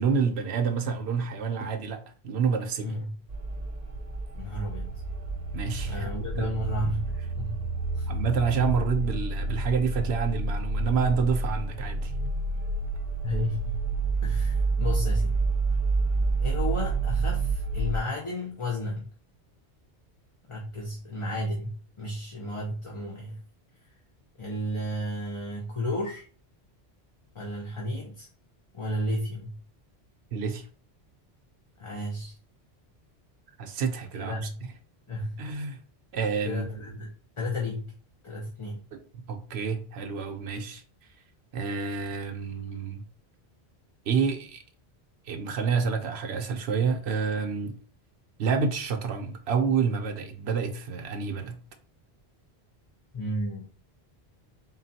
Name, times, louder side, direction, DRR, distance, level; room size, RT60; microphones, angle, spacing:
voice 1, 0.0-3.0 5.5-6.1 6.4-6.5 8.1-12.1 30.3-30.6 33.6-34.4 35.4-35.8 36.1-36.7 38.9-40.8 41.5-43.0 44.1-44.6 45.3-47.8 48.4-51.6, right 5 dB, 75° right, 0.9 m, -28 dB
voice 2, 2.8-3.1 4.3-5.0 5.9-7.7 7.9-8.1 13.2-13.8 14.2-15.4 16.4-19.1 20.5-23.4 24.4-26.2 27.3-28.3 28.7-29.6 31.8-32.3 34.1-34.6 35.1-35.4 36.4-37.9 38.2-38.8 53.1-53.7, left 1 dB, 35° left, 0.7 m, -33 dB
sound 1, 3.3-18.0, right 3 dB, 45° right, 0.8 m, -29 dB
3.9 x 2.3 x 4.1 m
omnidirectional pair, 1.1 m